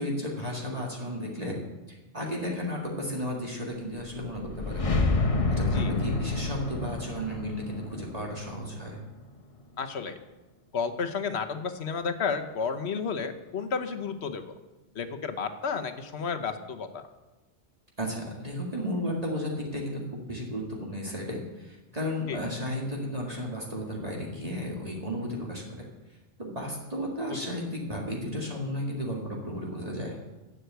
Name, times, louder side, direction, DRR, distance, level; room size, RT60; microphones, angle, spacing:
voice 1, 0.0-1.6 1.9-4.9 5.5-9.0 18.0-25.9 26.4-30.2, equal, 35° right, -2 dB, 2.1 m, -34 dB
sound 1, 4.1-9.2, left 3 dB, 30° left, 1.0 m, -29 dB
voice 2, 9.8-10.2 10.7-14.5 14.9-17.0 22.3-22.4 27.3-27.4, left 5 dB, 70° left, 7 dB, 1.2 m, -32 dB
11.5 x 7.6 x 8.0 m, 1.1 s
omnidirectional pair, 1.2 m